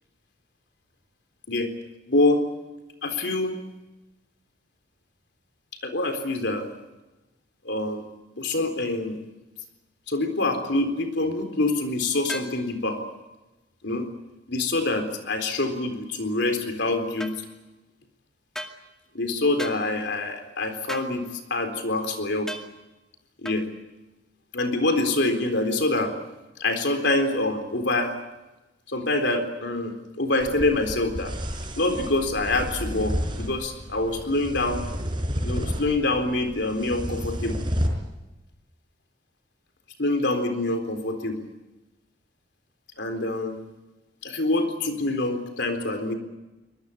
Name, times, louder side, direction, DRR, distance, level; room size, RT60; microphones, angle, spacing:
voice 1, 2.1-2.4 3.0-3.6 5.8-6.7 7.6-8.0 8.4-9.2 10.1-13.0 13.8-14.1 14.5-17.3 19.1-21.2 21.5-22.5 23.4-23.7 24.5-26.1 26.6-28.2 28.9-31.3 31.8-34.8 35.4-37.6 40.0-41.4 43.0-43.6 44.2-46.2, left 2 dB, 65° left, 7 dB, 4.0 m, -25 dB
sound 1, 12.3-12.6 17.2-17.4 18.5-18.8 19.6-19.8 20.9-21.1 22.5-22.7 23.4-23.6, equal, 5° left, 2.1 m, -35 dB
sound 2, 30.4-37.9, equal, 25° right, 5.3 m, -31 dB
24.5 x 21.0 x 8.5 m, 1.1 s
head